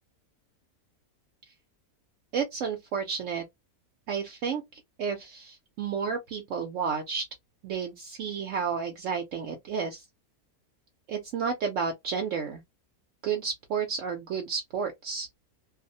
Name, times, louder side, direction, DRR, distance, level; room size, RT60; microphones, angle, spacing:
voice 1, 2.3-3.4 4.1-4.6 5.0-7.2 7.6-10.1 11.1-12.6 13.2-15.3, right 6 dB, 65° right, 0.9 m, -31 dB
2.6 x 2.1 x 2.6 m
omnidirectional pair, 1.6 m